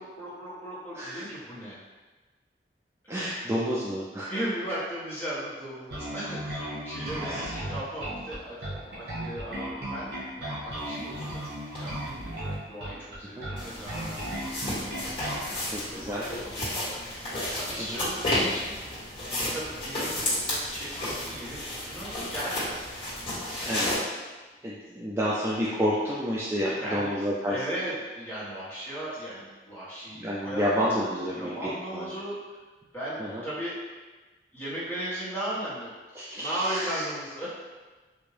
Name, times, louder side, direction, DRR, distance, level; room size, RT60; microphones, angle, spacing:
voice 1, 0.0-1.8 3.0-3.5 4.3-22.8 26.8-27.1 27.5-30.6 31.0-32.6 32.9-33.8 34.5-35.9 36.4-37.5, right 1 dB, 15° left, -10 dB, 1.2 m, -37 dB
voice 2, 3.1-4.3 7.2-7.5 13.4-13.5 15.7-16.3 17.8-18.0 23.6-24.0 24.6-27.6 30.1-32.1 33.2-33.4 36.2-37.0, equal, 15° right, -7 dB, 0.3 m, -30 dB
Bass guitar, 5.9-15.5, right 1 dB, 65° right, 1.2 m, -35 dB
sound 1, 11.2-11.3 11.8-11.9 13.6-24.0, left 1 dB, 30° left, 1.4 m, -32 dB
3.5 x 2.5 x 3.3 m, 1.3 s
head